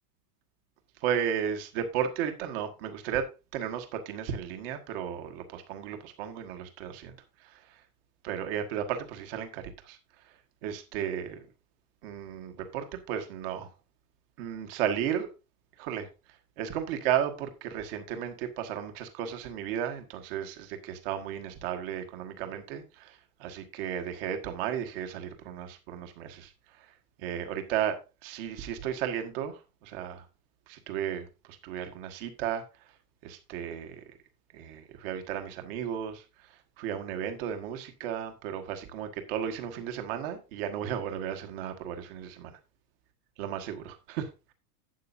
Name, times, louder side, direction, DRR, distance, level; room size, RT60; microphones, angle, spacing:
voice 1, 1.0-7.8 8.2-11.4 12.0-13.7 14.4-15.3 15.8-26.9 27.2-30.3 30.7-32.9 33.2-34.0 34.5-42.6 43.4-44.5, right 9 dB, 35° right, 1.6 m, -34 dB
12.0 x 9.4 x 2.7 m
supercardioid pair, 180°, 49 cm